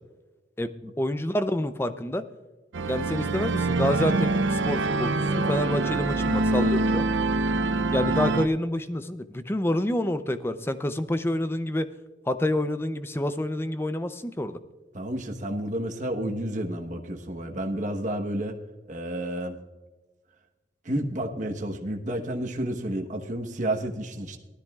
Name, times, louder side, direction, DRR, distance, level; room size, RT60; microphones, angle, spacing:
voice 1, 0.6-2.2 2.9-7.1 7.9-11.9 12.3-14.6, left 1 dB, 15° left, 11 dB, 0.5 m, -28 dB
sound 1, 2.7-8.5, right 2 dB, 85° right, 0.6 m, -25 dB
voice 2, 14.9-18.6 18.9-19.6 20.8-24.4, right 1 dB, 40° right, 3 dB, 1.1 m, -30 dB
18.5 x 13.0 x 2.4 m, 1.2 s
head